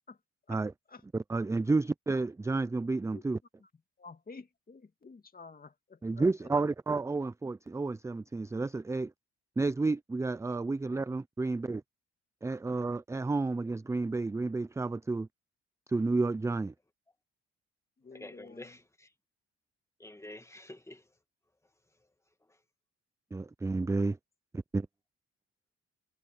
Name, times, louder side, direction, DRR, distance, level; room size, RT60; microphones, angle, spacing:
voice 1, 1.1-3.4 6.0-9.1 9.6-11.6 12.4-15.3 15.9-16.7 23.3-24.2 24.5-24.9, right 3 dB, 10° right, 0.4 m, -31 dB
voice 2, 4.0-6.2 18.0-18.8, left 4 dB, 30° left, 2.2 m, -51 dB
voice 3, 18.1-19.1 20.0-21.0, left 2 dB, 10° left, 2.1 m, -48 dB
cardioid pair, 90°, 30 cm